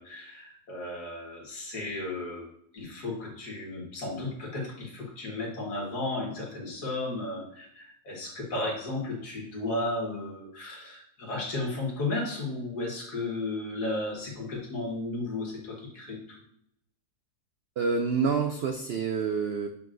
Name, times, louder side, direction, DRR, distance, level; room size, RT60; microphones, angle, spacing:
voice 1, 0.0-2.5 2.7-16.4, left 2 dB, 75° left, -2 dB, 2.3 m, -34 dB
voice 2, 17.8-19.7, right 5 dB, 90° right, 5 dB, 0.5 m, -27 dB
7.4 x 5.5 x 2.6 m, 0.74 s
omnidirectional pair, 1.7 m